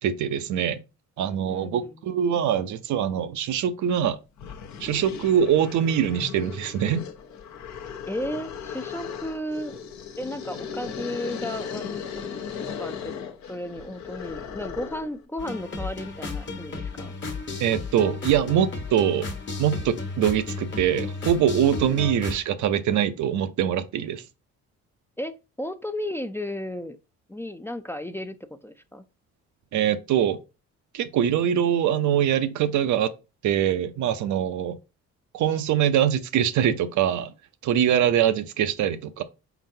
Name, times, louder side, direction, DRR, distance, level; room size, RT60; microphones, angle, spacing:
voice 1, 0.0-0.8 1.2-4.2 4.8-7.0 17.6-19.3 19.6-24.2 29.7-30.4 30.9-33.1 33.4-34.8 35.3-37.3 37.6-39.2, right 9 dB, 75° right, 0.6 m, -23 dB
voice 2, 1.5-2.0 8.1-9.8 10.2-12.3 12.8-17.1 25.2-27.0 27.3-28.4 28.6-29.0, left 1 dB, 10° left, 0.4 m, -34 dB
sound 1, 4.0-4.1 4.4-15.2, left 7 dB, 65° left, 0.8 m, -37 dB
sound 2, 15.4-22.4, left 3 dB, 40° left, 1.1 m, -33 dB
4.3 x 3.9 x 2.7 m
cardioid pair, 90°, 30 cm